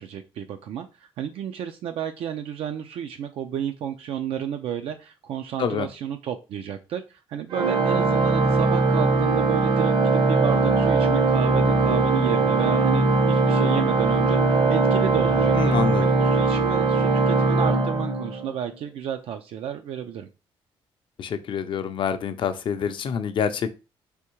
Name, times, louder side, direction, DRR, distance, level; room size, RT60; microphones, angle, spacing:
voice 1, 0.0-20.3, right 9 dB, 70° right, 6 dB, 0.3 m, -32 dB
Organ, 7.5-18.7, right 3 dB, 55° right, 0.7 m, -20 dB
voice 2, 15.6-16.1 21.2-23.7, left 7 dB, 55° left, 10 dB, 0.5 m, -27 dB
3.5 x 2.7 x 3.0 m, 0.30 s
cardioid pair, 90°, 10 cm